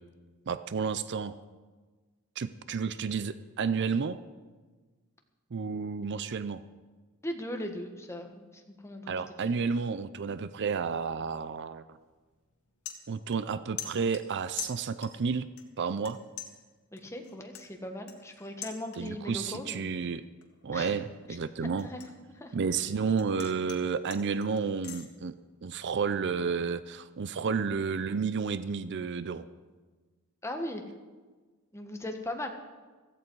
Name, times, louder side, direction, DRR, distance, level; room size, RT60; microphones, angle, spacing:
voice 1, 0.5-1.3 2.4-4.2 5.5-6.6 9.1-12.0 13.1-15.5 15.8-16.2 19.0-20.2 20.6-21.9 22.5-25.4 25.6-29.5, right 5 dB, 55° right, 14 dB, 0.5 m, -31 dB
voice 2, 7.2-8.4 8.8-9.1 9.5-9.6 16.9-19.8 20.7-20.9 21.8-22.1 22.4-22.5 30.4-30.8 31.7-32.5, left 1 dB, 15° left, 4 dB, 1.4 m, -38 dB
sound 1, 11.9-12.1 12.5-13.5 13.8-15.3 15.6-16.1 16.4-19.3 19.7-20.0 20.4-22.9 23.2-25.1, left 9 dB, 80° left, 1.8 m, -44 dB
16.0 x 14.5 x 4.7 m, 1.3 s
head